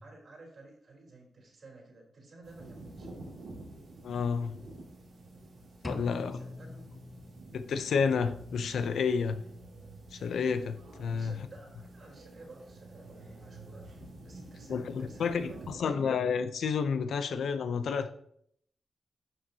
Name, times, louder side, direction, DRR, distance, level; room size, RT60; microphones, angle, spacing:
voice 1, 0.0-3.3 5.9-6.8 11.1-16.1, right 2 dB, 60° right, 3.7 m, -53 dB
sound 1, 2.4-15.8, right 2 dB, 85° right, 2.6 m, -49 dB
voice 2, 4.0-4.6 5.8-6.4 7.5-9.4 10.1-11.4 14.7-18.1, left 6 dB, 85° left, 0.6 m, -30 dB
sound 2, 5.8-7.8, left 2 dB, 15° left, 0.8 m, -42 dB
11.0 x 6.2 x 2.8 m
cardioid pair, 75°, 0 cm